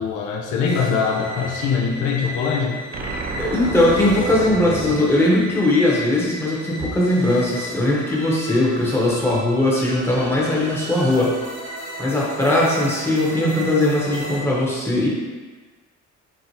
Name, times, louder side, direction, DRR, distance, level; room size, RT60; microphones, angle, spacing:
voice 1, 0.0-2.8, left 5 dB, 85° left, 0 dB, 0.5 m, -22 dB
sound 1, 0.6-14.4, equal, 60° right, 1.4 m, -34 dB
sound 2, 2.9-6.3, right 3 dB, 35° right, 0.4 m, -31 dB
voice 2, 3.4-11.4 12.0-15.1, left 1 dB, 10° left, -5 dB, 0.9 m, -19 dB
4.5 x 2.1 x 2.7 m, 1.4 s
cardioid pair, 90°, 30 cm